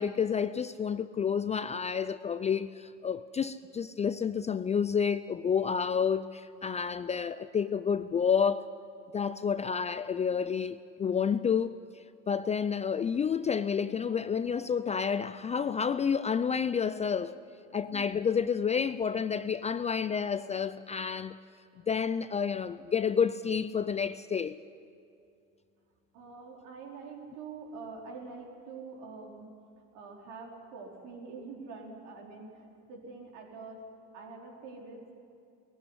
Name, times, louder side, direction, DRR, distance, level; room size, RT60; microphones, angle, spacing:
voice 1, 0.0-8.7 9.1-11.7 12.3-17.4 17.7-21.4 21.9-24.6, left 6 dB, 20° left, 0.4 m, -30 dB
voice 2, 26.1-29.5 29.9-33.9 34.1-35.2, right 4 dB, 65° right, 4.7 m, -45 dB
18.5 x 16.0 x 9.9 m
hypercardioid pair, 85°, 36 cm